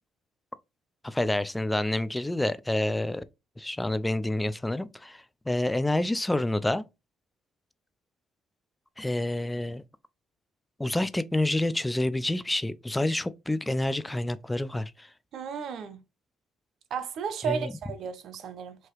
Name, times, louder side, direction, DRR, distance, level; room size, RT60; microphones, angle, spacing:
voice 1, 1.0-3.2 3.6-6.8 9.0-9.8 10.8-15.1 17.4-17.7, left 1 dB, 10° left, 0.4 m, -28 dB
voice 2, 15.3-16.0 16.9-18.9, right 7 dB, 65° right, 0.7 m, -34 dB
4.7 x 2.8 x 3.0 m
cardioid pair, 100°, 0 cm